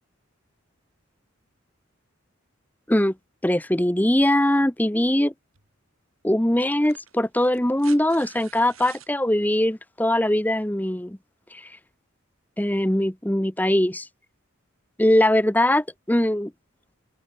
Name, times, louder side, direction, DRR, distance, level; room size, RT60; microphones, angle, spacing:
voice 1, 3.4-5.3 6.2-11.2 11.5-11.6 12.6-14.1 15.0-16.5, left 1 dB, 10° left, 0.8 m, -21 dB
sound 1, 5.5-5.7 6.7-9.1 10.6-10.7, right 10 dB, 80° right, 4.7 m, -48 dB
open air
head